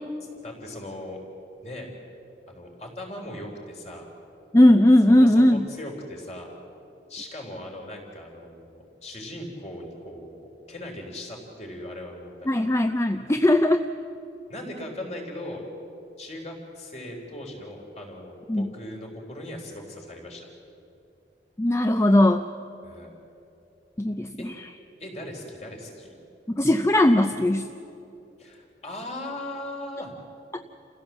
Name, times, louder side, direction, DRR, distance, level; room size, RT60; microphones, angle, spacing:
voice 1, 0.4-1.2 1.6-1.9 2.5-4.1 5.2-6.5 7.1-12.6 14.5-15.7 16.2-20.5 22.8-23.1 25.0-26.2 28.4-30.1, left 1 dB, 40° left, 0 dB, 3.8 m, -38 dB
voice 2, 4.5-5.6 12.5-13.8 18.5-18.7 21.6-22.5 24.0-24.5 26.6-27.7, left 1 dB, 15° left, 8 dB, 0.5 m, -18 dB
28.5 x 16.0 x 7.4 m, 2.9 s
head